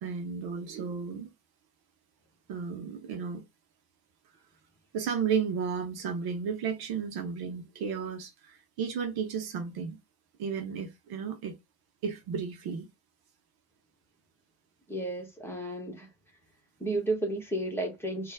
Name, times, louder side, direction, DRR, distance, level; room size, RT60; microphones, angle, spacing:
voice 1, 0.0-1.3 2.5-3.4 4.9-10.0 10.4-11.6 12.0-12.9, right 6 dB, 50° right, 1.0 m, -33 dB
voice 2, 14.9-16.1 16.8-18.3, right 2 dB, 5° left, 1.6 m, -32 dB
4.2 x 2.6 x 3.5 m
figure-of-eight pair, 65°, 49 cm